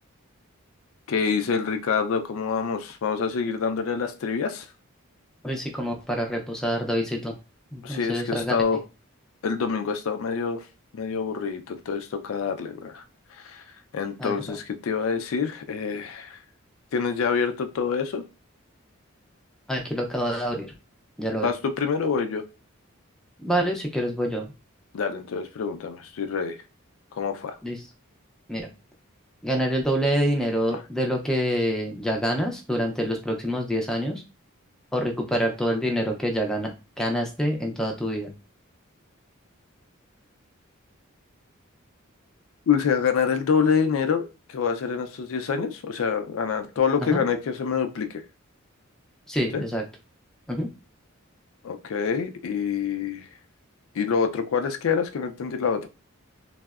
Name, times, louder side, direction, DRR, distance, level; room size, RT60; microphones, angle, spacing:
voice 1, 1.1-4.7 7.8-8.8 9.4-10.6 10.9-13.0 13.4-13.6 13.9-16.4 16.9-18.2 21.4-22.4 24.9-26.6 27.1-27.5 42.7-48.1 49.5-49.6 51.6-53.3 54.0-55.9, left 6 dB, 75° left, 7 dB, 0.4 m, -26 dB
voice 2, 5.4-7.3 7.7-8.6 14.2-14.6 19.7-20.7 21.2-21.5 23.4-24.5 27.6-27.8 28.5-28.7 29.4-34.2 34.9-36.7 37.0-38.3 47.0-47.2 49.3-49.8 50.5-50.7, equal, 5° left, 1 dB, 0.4 m, -26 dB
3.4 x 2.0 x 2.3 m, 0.31 s
head